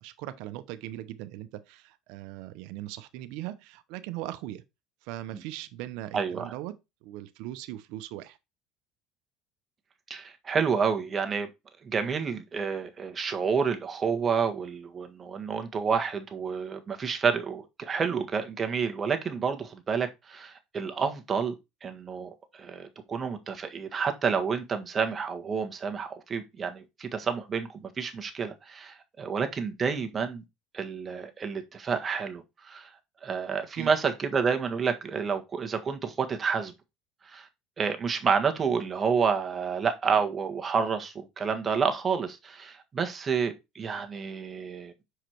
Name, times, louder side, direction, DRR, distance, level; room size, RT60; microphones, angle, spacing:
voice 1, 0.0-4.6 5.0-8.4 33.7-33.9, right 14 dB, 75° right, 0.8 m, -39 dB
voice 2, 6.1-6.5 10.1-11.5 11.8-21.5 21.8-30.4 30.7-32.9 33.2-36.7 37.2-37.5 37.8-44.9, right 6 dB, 25° right, 1.5 m, -29 dB
6.4 x 4.9 x 4.5 m
supercardioid pair, 120°, 0 cm